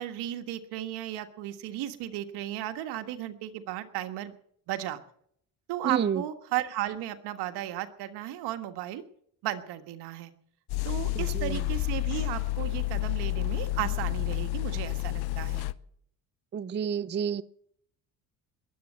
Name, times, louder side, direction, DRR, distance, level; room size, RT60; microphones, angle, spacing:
voice 1, 0.0-4.3 4.7-5.0 5.7-9.0 9.4-10.3 10.8-15.6, right 13 dB, 85° right, 8 dB, 1.6 m, -35 dB
voice 2, 5.8-6.2 11.2-11.6 16.5-17.4, right 8 dB, 25° right, 16 dB, 0.6 m, -29 dB
sound 1, 10.7-15.7, left 17 dB, 70° left, 0.8 m, -30 dB
21.0 x 8.6 x 7.5 m, 0.66 s
cardioid pair, 90°, 39 cm